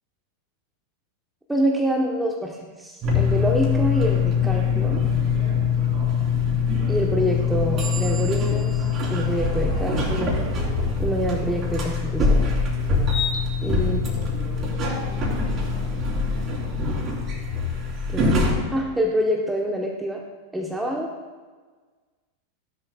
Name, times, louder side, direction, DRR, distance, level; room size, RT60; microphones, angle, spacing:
voice 1, 1.5-5.0 6.9-8.8 9.1-10.4 11.0-12.5 13.6-14.0 18.1-18.4 18.7-20.2 20.5-21.1, equal, 5° right, -1 dB, 1.3 m, -26 dB
sound 1, 3.0-18.5, left 5 dB, 30° right, 3.7 m, -23 dB
16.5 x 11.0 x 2.5 m, 1.4 s
figure-of-eight pair, 90°, 0 cm